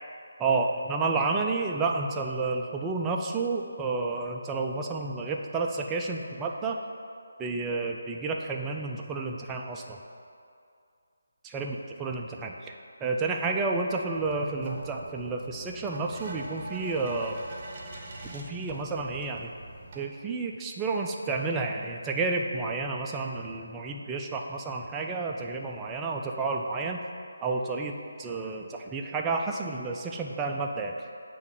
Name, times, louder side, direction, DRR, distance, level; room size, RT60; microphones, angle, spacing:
voice 1, 0.4-6.8 7.4-10.0 11.4-12.7 13.0-17.4 18.2-19.5 20.0-27.0 27.4-31.0, right 3 dB, 10° right, 1 dB, 0.4 m, -30 dB
sound 1, 14.1-20.0, right 2 dB, 30° right, 0.8 m, -42 dB
8.1 x 3.0 x 5.3 m, 2.4 s
figure-of-eight pair, 160°, 0 cm